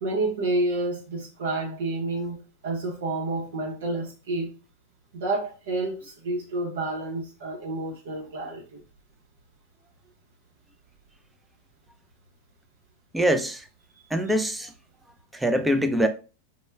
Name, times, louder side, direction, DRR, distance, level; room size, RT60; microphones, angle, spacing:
voice 1, 0.0-4.5 5.1-8.8, right 2 dB, 75° right, 0.7 m, -29 dB
voice 2, 13.1-13.6 14.1-14.7 15.3-16.1, equal, 5° right, 0.4 m, -23 dB
2.2 x 2.1 x 3.1 m
hypercardioid pair, 105°, 0 cm